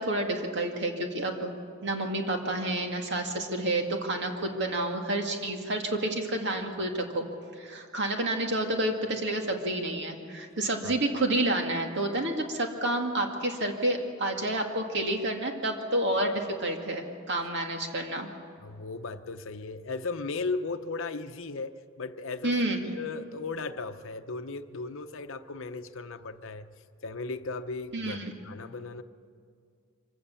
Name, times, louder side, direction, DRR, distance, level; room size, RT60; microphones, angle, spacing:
voice 1, 0.0-1.5 1.8-7.3 7.6-18.3 22.4-22.9 27.9-28.3, right 1 dB, 55° right, 3 dB, 2.2 m, -29 dB
voice 2, 18.6-22.6 22.9-26.7 27.0-29.0, left 3 dB, 65° left, 8 dB, 0.8 m, -36 dB
24.5 x 16.0 x 7.0 m, 2.2 s
head